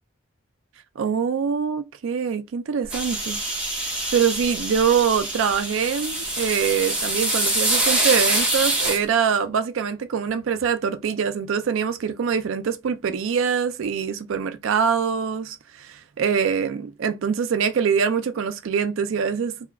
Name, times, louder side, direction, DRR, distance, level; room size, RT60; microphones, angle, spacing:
voice 1, 1.0-3.4 3.8-19.6, right 6 dB, 75° right, 0.4 m, -24 dB
sound 1, 2.9-9.0, right 1 dB, 5° right, 0.9 m, -25 dB
2.8 x 2.3 x 3.3 m
head